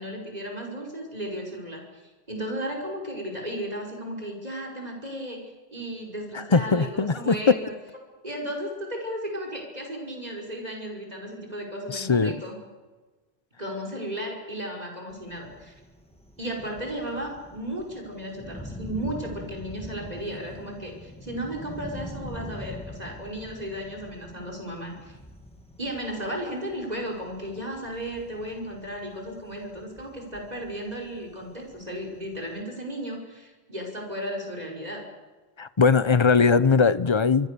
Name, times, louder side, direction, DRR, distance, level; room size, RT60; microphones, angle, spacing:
voice 1, 0.0-1.8 2.3-7.7 8.2-12.6 13.6-15.7 16.4-25.2 25.8-35.1, equal, 35° right, 1 dB, 5.6 m, -34 dB
voice 2, 6.3-7.6 11.9-12.3 35.6-37.5, left 5 dB, 30° left, 16 dB, 0.8 m, -20 dB
Thunder, 15.1-32.6, left 1 dB, 5° left, 2.8 m, -44 dB
24.5 x 24.5 x 6.9 m, 1.3 s
omnidirectional pair, 1.1 m